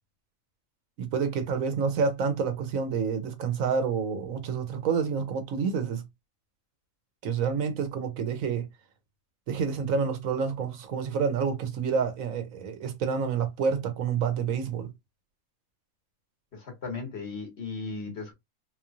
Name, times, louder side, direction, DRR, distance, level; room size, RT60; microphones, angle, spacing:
voice 1, 1.0-6.0 7.2-8.7 9.5-14.9, right 6 dB, 80° right, 1.2 m, -28 dB
voice 2, 16.5-18.3, left 4 dB, 55° left, 1.6 m, -36 dB
3.8 x 3.0 x 2.4 m
omnidirectional pair, 1.4 m